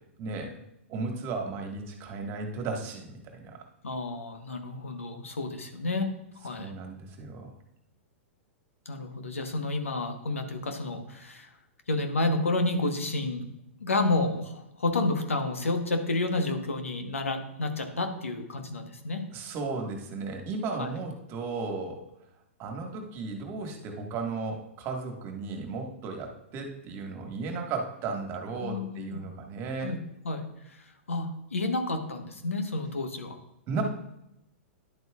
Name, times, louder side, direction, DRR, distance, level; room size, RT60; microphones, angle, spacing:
voice 1, 0.2-0.6 0.9-3.6 6.6-7.5 19.3-22.0 22.6-29.9 33.7-33.8, right 4 dB, 35° right, 3 dB, 1.7 m, -35 dB
voice 2, 3.8-6.7 8.8-11.5 11.9-13.5 13.8-19.2 20.8-20.9 28.6-29.2 29.8-30.0 30.2-33.4, left 2 dB, 80° left, 5 dB, 1.3 m, -30 dB
10.5 x 7.9 x 2.5 m, 0.82 s
figure-of-eight pair, 105°, 7 cm